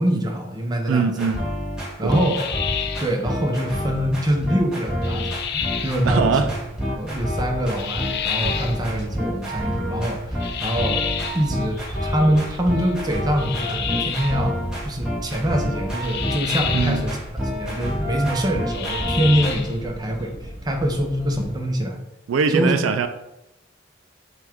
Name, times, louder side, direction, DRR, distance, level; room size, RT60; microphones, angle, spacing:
voice 1, 0.0-1.3 2.0-2.5 3.0-6.5 7.0-11.0 11.3-14.6 14.8-20.3 20.6-22.0 22.5-22.7, equal, 20° right, 0.6 m, -24 dB
voice 2, 0.9-1.4 2.0-2.2 6.0-6.5 16.7-17.0 22.3-23.1, right 5 dB, 85° right, 0.4 m, -21 dB
sound 1, 1.1-19.5, equal, 5° right, 1.2 m, -28 dB
sound 2, 2.1-3.2 5.0-6.0 7.8-8.8 10.4-11.5 13.4-14.4 16.0-17.1 18.7-19.8, left 9 dB, 55° left, 0.4 m, -29 dB
sound 3, 5.3-21.6, equal, 20° left, 1.6 m, -39 dB
5.9 x 2.4 x 3.5 m
head